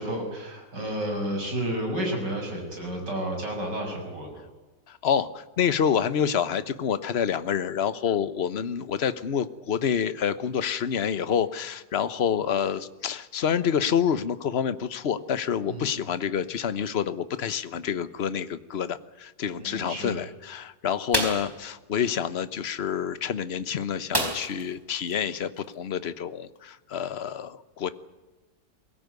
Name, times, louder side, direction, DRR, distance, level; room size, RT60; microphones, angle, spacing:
voice 1, 0.0-4.4 15.7-15.9 19.6-20.2, right 1 dB, 65° right, 2 dB, 7.6 m, -31 dB
voice 2, 4.9-27.9, left 8 dB, 40° left, 14 dB, 1.0 m, -28 dB
sound 1, 21.1-21.5 24.1-24.7 25.1-25.2 25.6-25.7, right 1 dB, 10° right, 3.8 m, -27 dB
22.5 x 18.0 x 9.5 m, 1.1 s
omnidirectional pair, 2.0 m